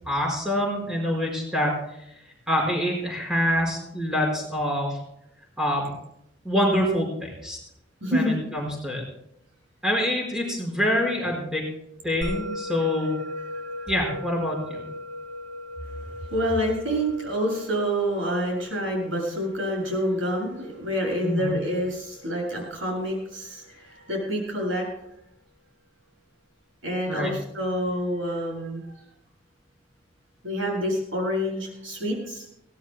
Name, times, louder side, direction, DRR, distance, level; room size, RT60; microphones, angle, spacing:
voice 1, 0.0-1.8 2.5-5.0 5.6-5.9 6.4-7.6 8.1-9.0 9.8-11.6 12.0-13.1 13.9-14.8 21.2-21.6 27.1-27.3, left 1 dB, 5° right, -1 dB, 5.0 m, -25 dB
voice 2, 8.0-8.3 13.8-13.9 15.9-16.0 16.3-24.9 26.8-28.9 30.4-32.5, equal, 90° right, -1 dB, 7.3 m, -27 dB
Musical instrument, 12.2-22.8, left 1 dB, 65° right, 5.1 m, -38 dB
22.0 x 17.5 x 2.2 m, 0.79 s
head